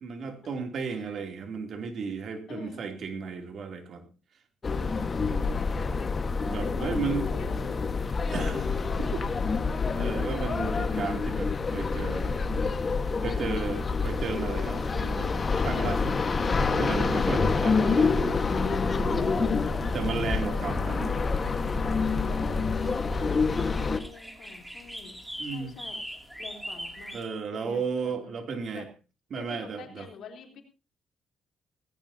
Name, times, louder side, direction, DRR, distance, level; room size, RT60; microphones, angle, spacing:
voice 1, 0.0-4.1 4.8-5.0 6.5-7.3 8.3-8.8 9.1-9.2 9.9-12.3 13.2-16.2 16.8-18.2 19.9-21.2 25.4-25.7 27.1-28.9 29.3-30.1, right 5 dB, 60° right, 5 dB, 3.0 m, -34 dB
voice 2, 0.8-1.2 2.5-2.8 6.6-9.2 15.0-15.5 15.7-15.9 20.7-22.6 23.7-25.2 25.4-26.0 26.4-27.2 27.5-28.3 28.7-28.9 29.4-30.6, left 6 dB, 70° left, 3 dB, 3.6 m, -48 dB
sound 1, 4.6-24.0, left 4 dB, 35° left, 1.5 m, -27 dB
sound 2, 18.0-27.2, equal, 5° right, 2.7 m, -44 dB
18.0 x 16.0 x 2.8 m, 0.32 s
cardioid pair, 90°, 0 cm